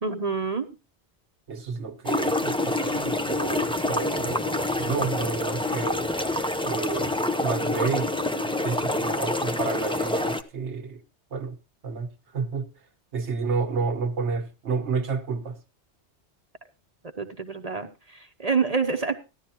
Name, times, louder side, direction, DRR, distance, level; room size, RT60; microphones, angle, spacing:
voice 1, 0.0-0.7 17.2-19.2, right 5 dB, 40° right, 0.9 m, -27 dB
voice 2, 1.5-6.0 6.6-7.1 7.4-11.0 11.3-11.6 11.8-12.7 13.1-15.6, right 4 dB, 85° right, 1.6 m, -30 dB
sound 1, 2.1-10.4, left 2 dB, 5° left, 0.5 m, -27 dB
15.0 x 11.0 x 2.9 m
omnidirectional pair, 1.1 m